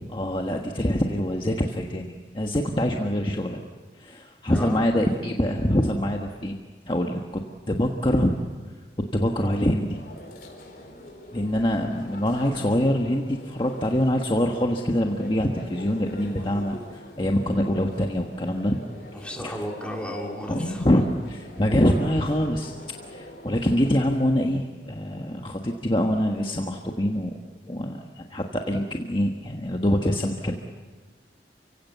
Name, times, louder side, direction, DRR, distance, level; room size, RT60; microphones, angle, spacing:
voice 1, 0.1-3.6 4.0-6.6 6.9-7.4 7.7-8.3 9.1-10.0 11.3-18.8 20.5-21.0 21.6-22.7 23.1-27.4 27.7-30.5, equal, 30° left, 1 dB, 1.4 m, -24 dB
voice 2, 4.5-4.9 16.4-16.7 19.1-20.9, equal, 5° left, 0 dB, 3.2 m, -34 dB
sound 1, 9.9-24.3, left 1 dB, 55° left, 4.9 m, -44 dB
30.0 x 17.0 x 8.2 m, 1.4 s
head